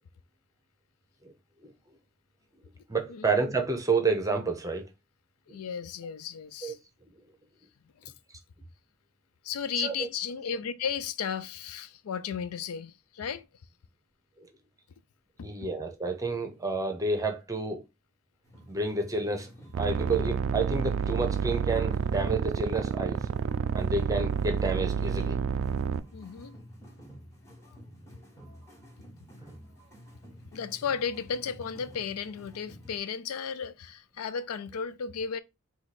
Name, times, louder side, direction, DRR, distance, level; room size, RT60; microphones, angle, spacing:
voice 1, 2.9-4.9 5.5-5.6 6.6-6.7 9.8-10.1 14.4-14.5 15.4-17.8 18.7-19.5 19.8-23.3 23.7-25.4, right 3 dB, 15° right, 0.7 m, -30 dB
voice 2, 5.5-6.8 8.0-8.1 9.4-13.5 15.4-15.5 26.1-26.6 30.5-35.4, left 7 dB, 80° left, 0.4 m, -34 dB
sound 1, 18.4-33.0, equal, 15° left, 1.2 m, -51 dB
sound 2, 19.7-26.0, right 6 dB, 60° right, 0.3 m, -29 dB
4.7 x 2.4 x 4.1 m
head